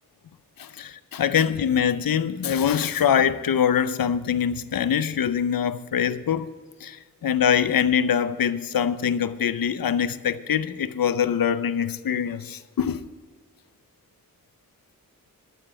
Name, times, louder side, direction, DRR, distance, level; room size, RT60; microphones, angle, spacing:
voice 1, 0.6-6.5 6.8-13.0, left 8 dB, 75° left, 0.7 m, -24 dB
12.5 x 6.9 x 7.6 m
wide cardioid pair, 110°, 34 cm